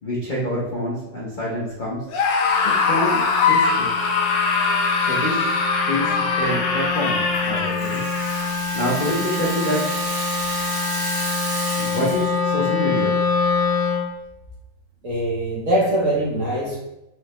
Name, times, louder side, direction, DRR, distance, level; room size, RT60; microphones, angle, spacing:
voice 1, 0.0-2.1 2.6-3.2 3.5-3.9 5.1-5.4 5.8-8.0 8.7-9.9 11.8-13.1, left 1 dB, 70° left, -5 dB, 0.4 m, -26 dB
Screaming, 2.1-8.6, left 4 dB, 90° left, 1.3 m, -21 dB
Wind instrument woodwind instrument, 2.5-14.1, left 4 dB, 45° left, 1.1 m, -26 dB
Rattle (instrument), 7.3-12.4, equal, 25° right, 1.1 m, -31 dB
voice 2, 15.0-16.8, right 1 dB, 55° right, -5 dB, 1.0 m, -22 dB
4.7 x 2.1 x 2.9 m, 0.95 s
omnidirectional pair, 1.9 m